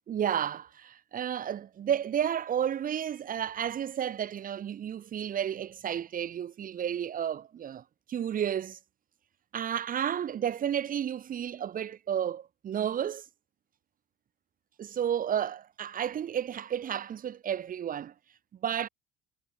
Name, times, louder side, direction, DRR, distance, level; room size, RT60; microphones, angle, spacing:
voice 1, 0.1-8.8 9.5-13.2 14.8-18.1 18.6-18.9, right 9 dB, 40° right, 1.2 m, -32 dB
supercardioid pair, 105°, 21 cm